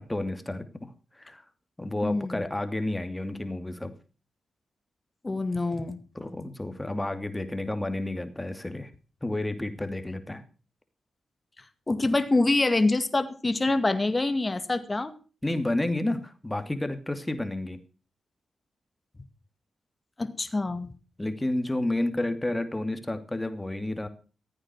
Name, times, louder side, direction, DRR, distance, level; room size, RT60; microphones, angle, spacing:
voice 1, 0.0-1.4 1.8-3.9 6.1-8.9 9.2-10.4 15.4-17.8 21.2-24.1, left 1 dB, 15° left, 8 dB, 2.7 m, -31 dB
voice 2, 2.0-2.4 5.2-6.0 11.9-15.1 20.2-20.9, left 2 dB, 30° left, 10 dB, 2.1 m, -25 dB
15.5 x 8.9 x 6.4 m, 0.37 s
supercardioid pair, 40°, 0 cm